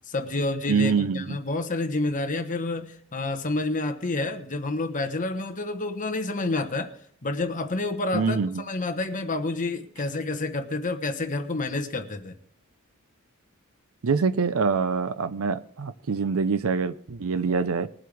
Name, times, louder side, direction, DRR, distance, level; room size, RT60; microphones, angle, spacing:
voice 1, 0.1-6.9 7.2-12.3, left 2 dB, 35° left, 6 dB, 1.1 m, -29 dB
voice 2, 0.7-1.4 8.1-8.6 14.0-17.9, right 5 dB, 70° right, 13 dB, 0.5 m, -25 dB
21.0 x 7.7 x 3.4 m, 0.65 s
head